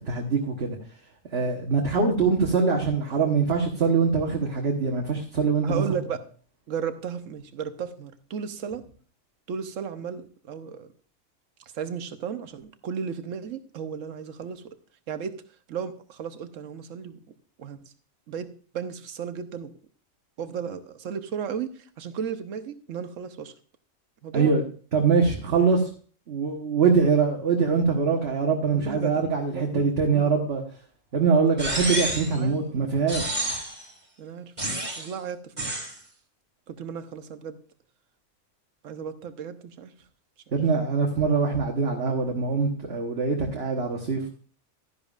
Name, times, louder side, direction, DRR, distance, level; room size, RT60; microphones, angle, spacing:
voice 1, 0.1-0.8 1.3-5.8 24.3-24.6 24.9-25.8 26.3-30.6 31.1-33.5 40.5-44.3, right 5 dB, 50° right, 1 dB, 1.4 m, -23 dB
voice 2, 5.6-6.2 6.7-8.8 9.5-10.9 11.7-14.7 15.1-15.4 15.7-17.2 17.6-17.9 18.3-18.5 18.7-19.8 20.4-23.5 24.2-24.6 28.7-29.2 29.5-30.3 32.4-32.6 34.2-34.5 35.0-35.7 36.7-37.6 38.8-39.9, right 7 dB, 70° right, 10 dB, 1.2 m, -34 dB
sound 1, 31.6-32.4 33.1-33.8 34.6-35.1 35.6-35.9, right 1 dB, 30° right, 2.1 m, -29 dB
12.5 x 10.5 x 2.4 m, 0.41 s
omnidirectional pair, 1.4 m